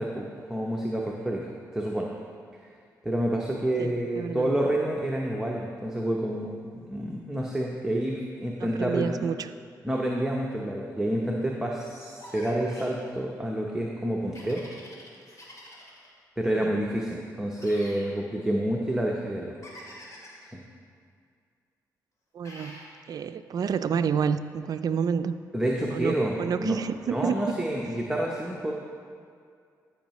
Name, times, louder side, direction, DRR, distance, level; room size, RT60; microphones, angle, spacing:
voice 1, 0.0-1.5 1.7-2.1 2.6-2.7 3.0-9.1 9.8-14.6 16.4-19.6 20.5-20.6 25.5-26.3 26.6-26.8 27.1-28.7, right 1 dB, 5° right, -2 dB, 0.9 m, -28 dB
voice 2, 3.8-4.5 8.6-9.5 16.5-16.7 22.3-22.8 23.1-25.3 25.9-27.5, right 7 dB, 60° right, 12 dB, 0.4 m, -29 dB
sound 1, 12.2-13.0 14.3-16.1 17.6-18.1 19.6-20.5 22.4-22.9, left 1 dB, 50° left, 2.2 m, -46 dB
14.0 x 5.6 x 3.1 m, 2.2 s
cardioid pair, 70°, 7 cm